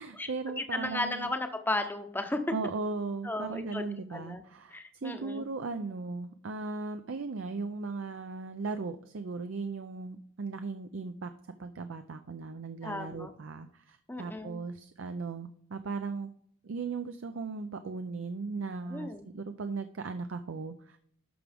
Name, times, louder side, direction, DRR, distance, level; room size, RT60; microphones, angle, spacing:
voice 1, 0.0-1.3 2.5-11.3 11.6-16.3 16.6-21.0, right 4 dB, 65° right, 8 dB, 0.5 m, -37 dB
voice 2, 0.6-2.4 3.2-3.8 4.1-4.4 4.7-5.4 12.8-13.3 14.1-14.6 18.9-19.3, left 2 dB, 10° left, 7 dB, 0.8 m, -34 dB
11.0 x 6.0 x 3.5 m, 0.65 s
head